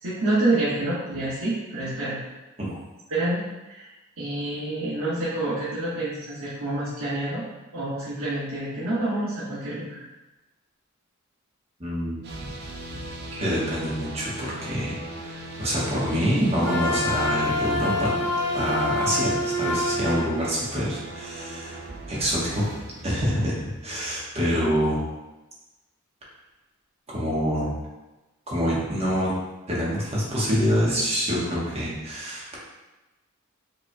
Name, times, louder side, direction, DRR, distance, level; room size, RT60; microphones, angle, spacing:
voice 1, 0.0-2.2 3.1-3.9 4.2-7.4 7.7-9.9, right 2 dB, 75° right, -12 dB, 1.3 m, -27 dB
voice 2, 11.8-12.5 13.3-18.1 18.5-21.8 22.1-22.6 23.0-25.0 27.1-27.8 28.5-29.3 29.7-32.6, equal, 30° right, -6 dB, 1.1 m, -26 dB
sound 1, 12.2-24.1, right 1 dB, 50° right, 0.7 m, -39 dB
Wind instrument woodwind instrument, 16.6-20.3, left 1 dB, 75° left, 0.9 m, -26 dB
5.1 x 3.0 x 2.2 m, 1.1 s
head